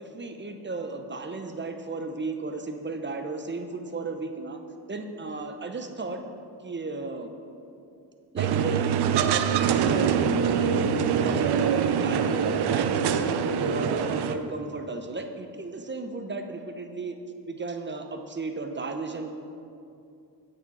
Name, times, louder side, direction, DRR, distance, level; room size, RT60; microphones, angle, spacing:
voice 1, 0.0-4.6 4.9-6.2 6.6-7.3 8.3-8.8 9.6-17.2 17.5-19.3, right 3 dB, 25° right, 6 dB, 0.9 m, -34 dB
sound 1, 8.4-14.4, right 7 dB, 65° right, 0.7 m, -24 dB
9.3 x 8.8 x 4.8 m, 2.6 s
cardioid pair, 80°, 42 cm